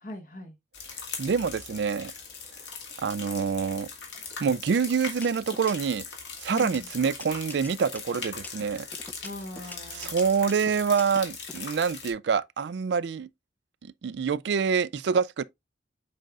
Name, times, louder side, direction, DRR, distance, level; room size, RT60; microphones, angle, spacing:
voice 1, 0.0-0.5 6.5-6.9 9.2-10.1, left 1 dB, 45° left, 1.3 m, -40 dB
sound 1, 0.7-12.1, left 5 dB, 70° left, 2.2 m, -40 dB
voice 2, 1.2-2.1 3.0-3.9 4.4-6.0 6.4-8.9 9.9-13.3 13.8-15.4, right 6 dB, 65° right, 0.4 m, -26 dB
sound 2, 4.1-4.6 5.1-6.1 6.6-11.6, left 2 dB, 10° left, 0.5 m, -44 dB
7.6 x 5.1 x 2.4 m
head